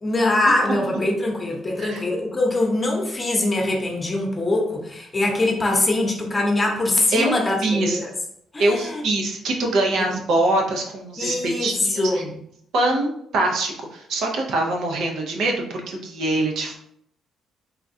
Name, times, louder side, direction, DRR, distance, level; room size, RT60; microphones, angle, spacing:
voice 1, 0.0-8.1 8.5-9.0 10.0-10.1 11.2-12.3, left 2 dB, 25° left, 0 dB, 0.8 m, -23 dB
voice 2, 7.6-8.0 8.6-12.2 12.7-16.8, right 2 dB, 75° right, 1 dB, 0.6 m, -23 dB
3.5 x 2.3 x 2.6 m, 0.70 s
cardioid pair, 90°, 0 cm